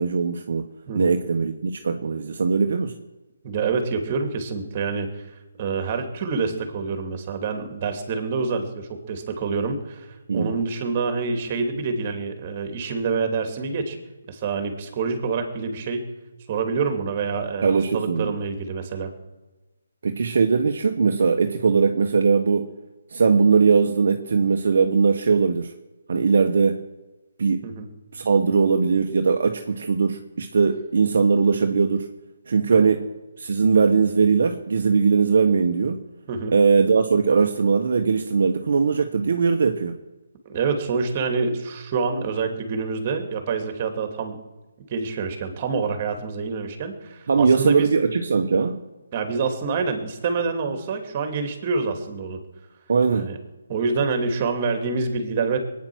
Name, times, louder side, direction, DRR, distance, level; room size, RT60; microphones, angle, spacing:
voice 1, 0.0-0.7 0.9-2.9 10.3-10.5 17.6-18.3 20.0-22.7 23.1-25.7 26.1-26.8 27.4-27.7 28.1-32.1 32.5-33.1 33.4-36.0 36.5-40.0 47.3-48.8 52.9-53.3, right 5 dB, 60° right, 5 dB, 1.2 m, -20 dB
voice 2, 0.9-1.2 3.4-5.2 5.6-10.1 10.3-14.0 14.3-16.0 16.5-19.1 27.6-27.9 36.3-36.5 40.5-44.4 44.9-47.9 49.1-52.4 53.1-53.4 53.7-55.6, right 4 dB, 30° right, 6 dB, 2.7 m, -27 dB
22.0 x 9.6 x 6.3 m, 1.1 s
figure-of-eight pair, 155°, 0 cm